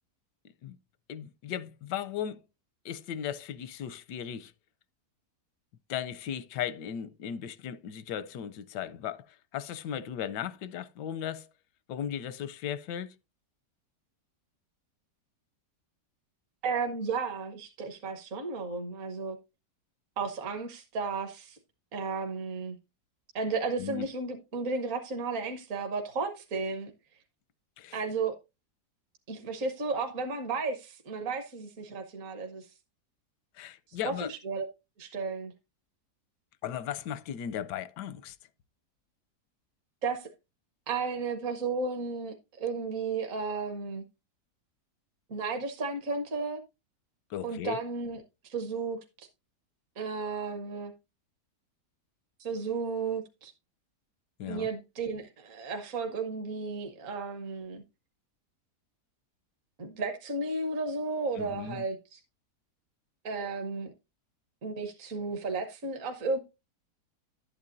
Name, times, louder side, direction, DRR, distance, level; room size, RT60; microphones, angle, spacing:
voice 1, 1.1-2.4 2.8-4.5 5.9-9.2 9.5-11.5 11.9-13.1 23.8-24.1 27.8-28.0 33.6-34.3 36.6-38.3 47.3-47.8 54.4-54.7 61.4-61.8, left 9 dB, 85° left, 1.3 m, -36 dB
voice 2, 16.6-19.4 20.2-21.6 21.9-22.8 23.3-26.9 27.9-28.3 29.3-32.7 34.0-34.7 35.0-35.5 40.0-40.3 40.9-44.0 45.3-46.6 47.4-48.2 48.4-49.3 50.0-50.9 52.4-53.5 54.5-57.8 59.8-62.2 63.2-63.9 64.6-66.4, right 4 dB, 55° right, 1.4 m, -33 dB
11.5 x 8.6 x 2.5 m
omnidirectional pair, 1.8 m